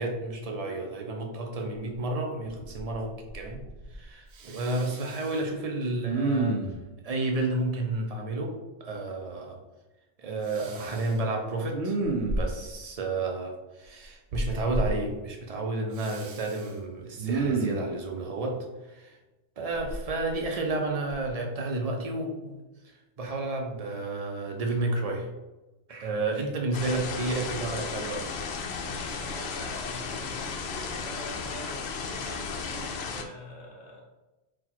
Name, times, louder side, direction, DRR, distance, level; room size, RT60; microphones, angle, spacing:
voice 1, 0.0-3.6 3.9-6.6 7.0-9.6 10.2-12.0 12.4-19.2 19.6-22.6 23.2-25.3 25.9-28.3, right 2 dB, 40° right, 2 dB, 0.6 m, -31 dB
Respiratory sounds, 1.9-2.0 2.5-3.0 3.3-4.0 4.4-5.4 6.1-6.9 10.5-11.1 11.7-12.7 14.3-14.9 16.0-16.7 17.2-17.9 19.7-20.7 21.1-21.3, right 3 dB, 75° right, 0.9 m, -31 dB
sound 1, 26.7-33.2, left 5 dB, 70° left, 0.8 m, -35 dB
voice 2, 28.8-34.0, equal, 45° left, -3 dB, 1.2 m, -44 dB
4.2 x 2.3 x 4.3 m, 1.1 s
omnidirectional pair, 1.1 m